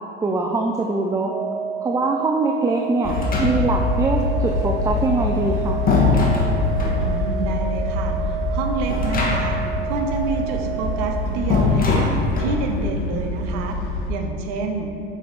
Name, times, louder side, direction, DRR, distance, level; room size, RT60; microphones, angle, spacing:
voice 1, 0.2-1.3 1.8-5.8, right 3 dB, 10° right, 1 dB, 0.4 m, -23 dB
sound 1, 1.3-11.3, right 10 dB, 85° right, 0.7 m, -31 dB
sound 2, 3.0-14.1, left 2 dB, 50° left, 0.8 m, -25 dB
sound 3, 3.1-3.9 5.2-7.0 8.9-9.7 10.0-10.1 11.5-12.6, left 4 dB, 30° left, 1.4 m, -22 dB
voice 2, 7.0-9.6 9.8-12.1 12.4-13.8 14.1-14.9, right 3 dB, 55° right, 4 dB, 0.9 m, -28 dB
6.6 x 4.9 x 4.1 m, 2.6 s
hypercardioid pair, 80°, 30 cm